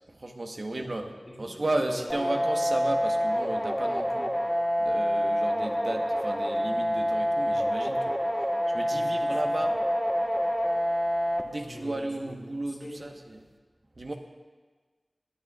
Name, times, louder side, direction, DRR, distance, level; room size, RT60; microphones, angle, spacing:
voice 1, 0.1-1.1 1.4-4.3 4.8-8.2 8.7-9.8 11.4-13.4 14.0-14.1, right 2 dB, 65° right, 3 dB, 1.1 m, -34 dB
voice 2, 0.7-2.3 8.9-9.7 11.6-12.4 12.7-13.1, left 1 dB, 55° left, -3 dB, 3.9 m, -45 dB
sound 1, 2.1-11.4, equal, ahead, 1.2 m, -27 dB
22.5 x 10.5 x 2.4 m, 1.4 s
wide cardioid pair, 50°, 0 cm